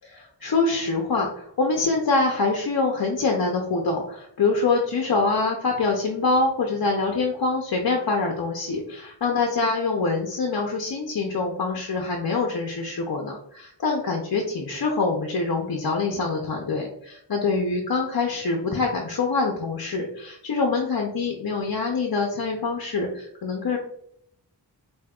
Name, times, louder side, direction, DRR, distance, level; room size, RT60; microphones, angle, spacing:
voice 1, 0.1-23.8, left 3 dB, 60° left, 1 dB, 0.6 m, -25 dB
5.0 x 2.7 x 2.3 m, 0.69 s
wide cardioid pair, 65°, 43 cm